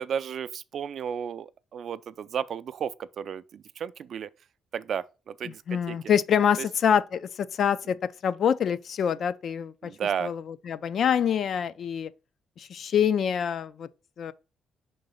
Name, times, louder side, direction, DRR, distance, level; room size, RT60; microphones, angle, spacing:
voice 1, 0.0-4.3 4.7-6.0 6.6-6.7 9.8-10.3, right 8 dB, 60° right, 0.4 m, -33 dB
voice 2, 5.7-8.0 8.2-9.9 10.2-12.1 12.6-13.9 14.2-14.3, left 8 dB, 60° left, 0.4 m, -25 dB
4.8 x 3.8 x 5.3 m
cardioid pair, 90°, 0 cm